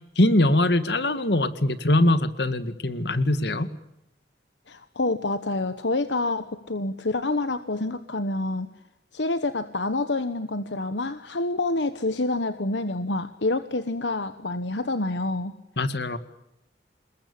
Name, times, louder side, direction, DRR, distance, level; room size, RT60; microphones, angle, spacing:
voice 1, 0.2-3.7 15.8-16.2, left 1 dB, 65° left, 12 dB, 2.0 m, -22 dB
voice 2, 4.7-8.7 9.1-15.5, left 2 dB, 80° left, 11 dB, 1.3 m, -27 dB
28.0 x 21.5 x 8.6 m, 0.83 s
head